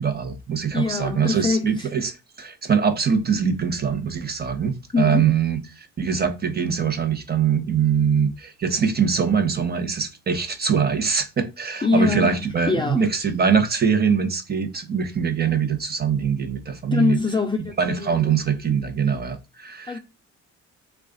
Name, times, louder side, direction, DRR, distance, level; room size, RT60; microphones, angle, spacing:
voice 1, 0.0-17.2 17.8-20.0, right 6 dB, 30° right, 0.9 m, -23 dB
voice 2, 0.7-1.9 4.9-5.3 11.8-13.0 16.9-18.3 19.9-20.0, left 3 dB, 15° left, 0.5 m, -23 dB
3.4 x 2.4 x 3.7 m
cardioid pair, 90°, 30 cm